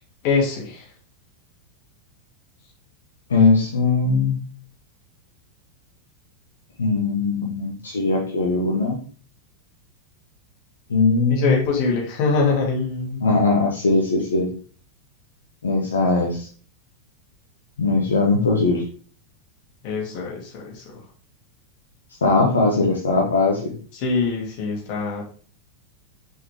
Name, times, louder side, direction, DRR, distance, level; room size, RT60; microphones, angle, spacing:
voice 1, 0.2-0.9 11.3-13.2 19.8-21.0 23.9-25.2, left 4 dB, 45° left, -1 dB, 2.5 m, -24 dB
voice 2, 3.3-4.4 6.8-9.0 10.9-11.6 13.2-14.5 15.6-16.5 17.8-18.8 22.2-23.7, left 3 dB, 70° left, -3 dB, 1.3 m, -20 dB
6.0 x 5.0 x 3.3 m, 0.43 s
figure-of-eight pair, 90°, 0 cm